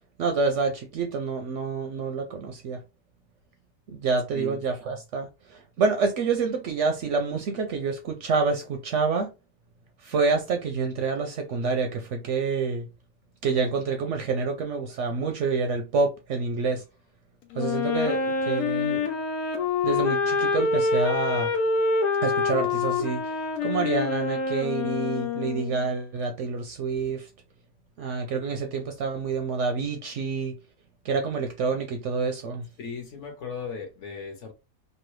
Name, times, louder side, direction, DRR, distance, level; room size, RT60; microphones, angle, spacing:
voice 1, 0.2-2.8 3.9-9.3 10.0-12.9 13.4-16.8 17.6-19.0 19.8-21.5 22.2-23.4 23.6-27.3 28.0-30.6 31.0-32.7, right 4 dB, 65° right, 0.8 m, -27 dB
Wind instrument woodwind instrument, 17.5-25.9, left 4 dB, 90° left, 1.2 m, -26 dB
voice 2, 32.8-34.5, left 5 dB, 55° left, 1.1 m, -37 dB
3.1 x 2.3 x 3.0 m
omnidirectional pair, 1.6 m